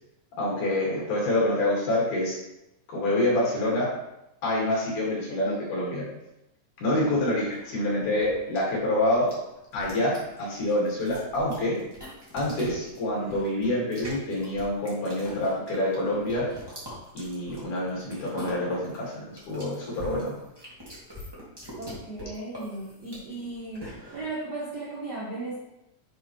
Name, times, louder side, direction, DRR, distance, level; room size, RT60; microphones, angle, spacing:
voice 1, 0.4-2.4 2.9-3.9 4.4-6.1 6.8-9.3 9.7-11.8 12.3-16.5 17.1-20.4, left 1 dB, 70° left, -4 dB, 3.5 m, -27 dB
sound 1, 7.2-24.3, left 1 dB, 10° right, 1.5 m, -44 dB
voice 2, 21.8-23.8 24.1-25.6, right 2 dB, 80° right, -5 dB, 0.9 m, -36 dB
9.2 x 4.5 x 3.1 m, 0.91 s
omnidirectional pair, 3.7 m